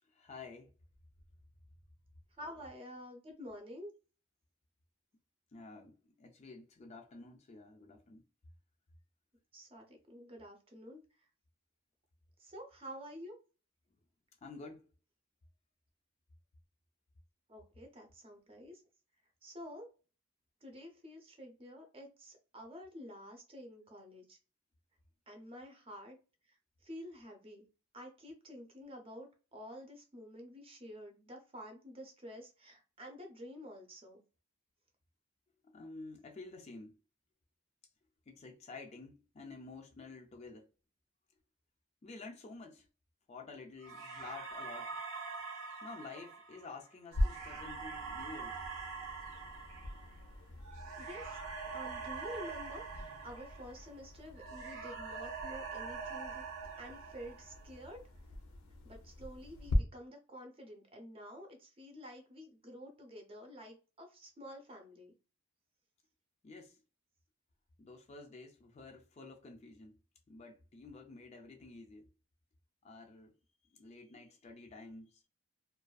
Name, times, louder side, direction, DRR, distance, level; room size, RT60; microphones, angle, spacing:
voice 1, 0.0-0.7 5.5-8.3 14.4-14.9 35.6-37.0 38.3-40.7 42.0-42.9 43.3-45.0 45.8-48.6 66.4-66.8 67.8-70.0 70.3-72.1 72.8-73.3 73.7-75.2, left 3 dB, 30° left, 0.3 m, -50 dB
voice 2, 2.4-3.9 9.5-11.3 12.4-13.3 17.5-18.8 19.4-19.9 20.6-24.4 25.3-26.2 26.5-26.6 26.8-27.7 27.9-34.2 51.0-51.4 51.7-56.4 56.8-58.1 58.8-65.1, equal, 25° right, 0.5 m, -49 dB
sound 1, 43.8-54.0 54.3-57.8, right 5 dB, 80° right, 0.8 m, -44 dB
sound 2, 47.1-59.8, left 1 dB, 90° left, 0.5 m, -41 dB
2.5 x 2.3 x 2.2 m
head